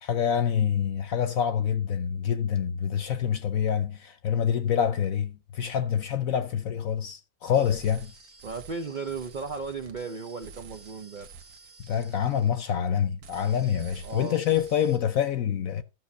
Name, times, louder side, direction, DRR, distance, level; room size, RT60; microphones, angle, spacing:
voice 1, 0.0-8.1 11.8-15.8, left 8 dB, 65° left, 1.0 m, -26 dB
sound 1, 7.5-12.9 13.2-15.0, right 4 dB, 85° right, 1.7 m, -50 dB
voice 2, 8.4-11.3 14.0-14.4, right 4 dB, 70° right, 0.4 m, -35 dB
12.5 x 5.7 x 5.3 m
omnidirectional pair, 1.7 m